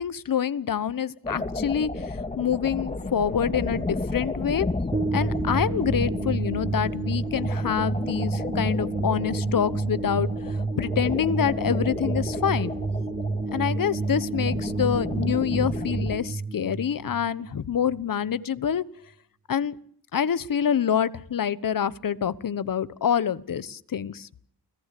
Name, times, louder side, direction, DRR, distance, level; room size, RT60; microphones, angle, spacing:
voice 1, 0.0-4.7 5.1-12.7 13.5-18.8 19.5-19.8 20.1-24.3, left 8 dB, 55° left, 17 dB, 1.2 m, -26 dB
sound 1, 1.2-16.2, left 2 dB, 15° left, 2.5 m, -33 dB
sound 2, 4.9-18.0, right 3 dB, 20° right, 1.6 m, -29 dB
29.5 x 19.0 x 8.5 m, 0.63 s
wide cardioid pair, 130°, 40 cm